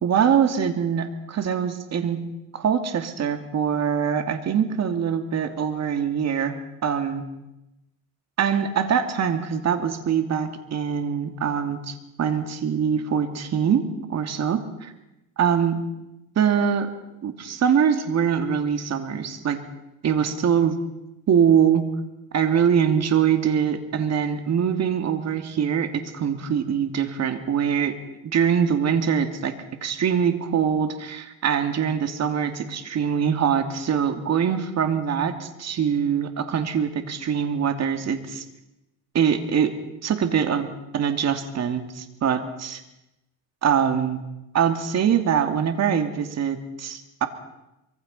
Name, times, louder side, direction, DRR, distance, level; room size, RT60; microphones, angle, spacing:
voice 1, 0.0-2.2 2.5-7.2 8.4-14.9 15.4-15.8 16.4-16.9 17.2-19.6 20.0-20.8 21.3-21.8 22.3-28.0 28.2-29.5 29.8-38.4 39.1-39.7 40.0-42.8 43.6-44.2 44.5-47.3, right 7 dB, 45° right, 7 dB, 2.7 m, -23 dB
25.0 x 23.0 x 5.6 m, 0.93 s
cardioid pair, 115°, 38 cm